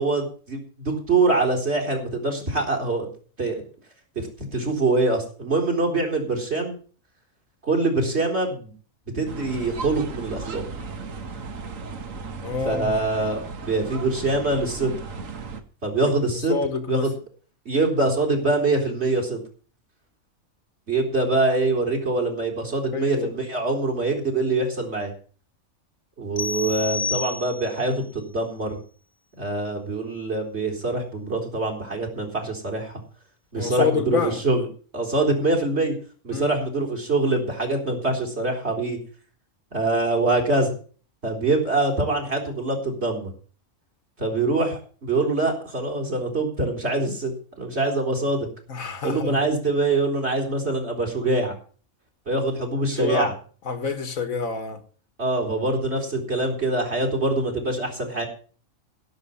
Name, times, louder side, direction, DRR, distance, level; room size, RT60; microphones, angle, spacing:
voice 1, 0.0-3.1 3.4-3.6 4.2-4.3 4.5-6.7 7.6-8.7 9.1-10.6 12.6-15.0 15.8-16.6 16.9-17.1 17.7-19.4 20.9-25.1 26.2-28.8 29.4-32.9 33.5-34.7 34.9-35.9 36.2-39.0 39.7-40.7 41.2-43.3 44.2-48.5 49.0-51.5 52.3-53.3 55.2-58.3, right 2 dB, 50° right, 3.9 m, -24 dB
sound 1, 9.3-15.6, right 4 dB, 70° right, 1.7 m, -36 dB
voice 2, 12.4-13.0 16.5-17.1 22.9-23.3 33.6-34.4 36.3-36.6 48.7-49.4 53.0-53.3 53.7-54.8, left 5 dB, 75° left, 2.0 m, -27 dB
sound 2, 26.4-27.9, left 4 dB, 30° left, 0.9 m, -29 dB
16.0 x 7.2 x 7.0 m
omnidirectional pair, 1.4 m